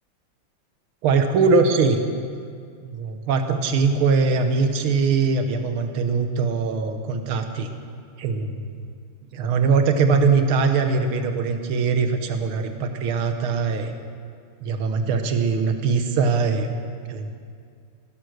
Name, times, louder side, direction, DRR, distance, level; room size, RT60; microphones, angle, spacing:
voice 1, 1.0-2.0 2.8-7.7 8.2-8.5 9.3-13.9 14.6-16.7 17.1-17.3, right 4 dB, 80° right, 7 dB, 1.8 m, -21 dB
16.5 x 11.0 x 6.4 m, 2.2 s
omnidirectional pair, 2.3 m